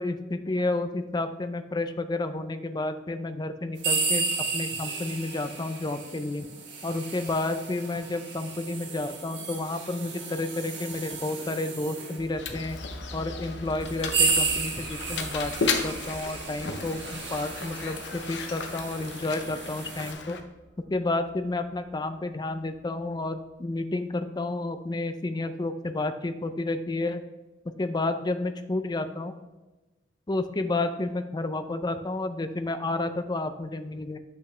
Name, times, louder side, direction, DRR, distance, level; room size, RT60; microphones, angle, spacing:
voice 1, 0.0-4.3 4.5-6.5 6.8-12.8 13.1-20.4 20.9-27.2 27.8-29.3 30.3-34.2, left 2 dB, 25° left, 9 dB, 0.4 m, -31 dB
sound 1, 3.8-12.2 13.0-13.1 13.8-20.1, right 4 dB, 75° right, 1.2 m, -33 dB
sound 2, 12.2-23.5 23.8-23.9, equal, 50° left, 1.0 m, -46 dB
Mechanisms, 12.3-20.4, left 4 dB, 70° left, 0.7 m, -35 dB
8.2 x 5.7 x 3.3 m, 1.1 s
head